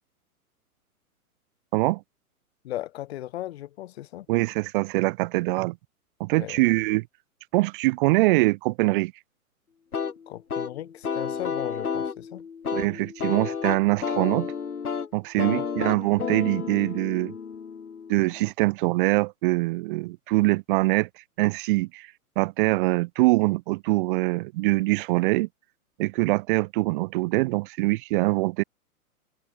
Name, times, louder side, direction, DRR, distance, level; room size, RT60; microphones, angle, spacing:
voice 1, 2.6-4.3 6.3-6.6 10.3-12.5 15.4-15.6, left 14 dB, 45° left, 1.1 m, -36 dB
voice 2, 4.3-5.8 6.2-7.0 7.5-9.1 12.7-14.5 15.1-17.3 18.1-21.1 21.4-22.1 22.4-25.5 26.0-28.6, right 22 dB, 35° right, 1.4 m, -23 dB
sound 1, 9.9-18.5, left 6 dB, 80° left, 1.5 m, -31 dB
figure-of-eight pair, 115°, 44 cm